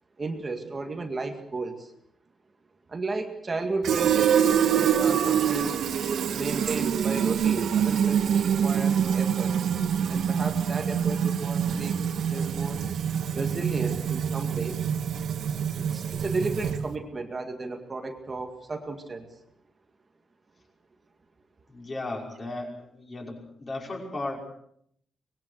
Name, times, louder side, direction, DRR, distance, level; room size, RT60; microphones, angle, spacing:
voice 1, 0.2-1.9 2.9-5.8 6.3-9.6 10.1-12.8 13.3-14.9 15.7-19.3, right 3 dB, 20° right, 4 dB, 2.1 m, -34 dB
Fill (with liquid), 3.8-16.9, right 8 dB, 65° right, 1.5 m, -25 dB
voice 2, 21.7-24.4, left 2 dB, 25° left, 0 dB, 5.7 m, -35 dB
25.5 x 21.0 x 6.5 m, 0.70 s
wide cardioid pair, 180°, 0 cm